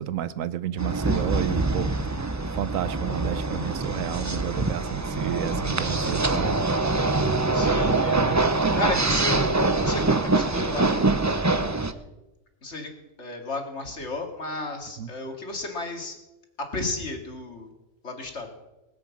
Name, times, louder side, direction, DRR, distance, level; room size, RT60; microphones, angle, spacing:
voice 1, 0.0-6.6 8.9-9.0 15.0-15.1, right 11 dB, 85° right, 16 dB, 1.1 m, -31 dB
sound 1, 0.8-11.9, right 3 dB, 20° right, 0.5 m, -24 dB
voice 2, 7.5-8.2 8.7-9.5 9.8-11.2 12.6-12.9 13.2-16.2 16.6-17.7 18.0-18.5, left 2 dB, 60° left, 3 dB, 2.7 m, -33 dB
20.0 x 8.4 x 7.3 m, 1.0 s
omnidirectional pair, 1.4 m